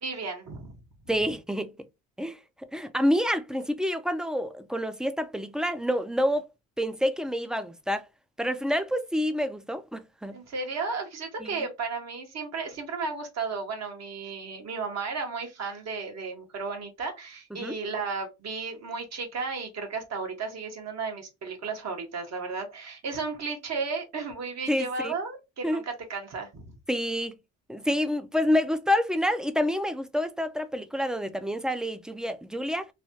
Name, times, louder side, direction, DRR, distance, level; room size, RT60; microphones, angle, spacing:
voice 1, 0.0-0.8 10.3-25.8 26.1-26.8, right 4 dB, 60° right, 1.2 m, -34 dB
voice 2, 1.1-1.7 2.2-2.4 2.7-6.5 6.8-8.1 8.4-10.4 11.4-11.5 17.5-17.7 24.7-25.1 25.6-25.8 26.9-27.3 27.7-32.9, equal, ahead, 0.4 m, -28 dB
3.2 x 2.2 x 2.7 m
cardioid pair, 90°, 30 cm